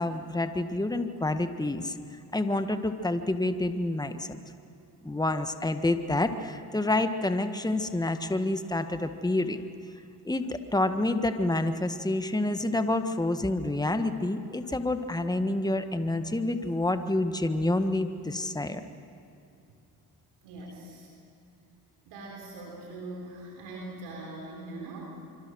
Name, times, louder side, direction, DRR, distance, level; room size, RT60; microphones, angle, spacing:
voice 1, 0.0-1.9 2.3-4.4 5.0-9.6 10.2-18.8, left 2 dB, 10° left, 8 dB, 1.6 m, -28 dB
voice 2, 20.4-21.1 22.1-25.0, right 2 dB, 85° right, -1 dB, 3.7 m, -41 dB
26.0 x 24.5 x 6.4 m, 2.6 s
supercardioid pair, 50°, 39 cm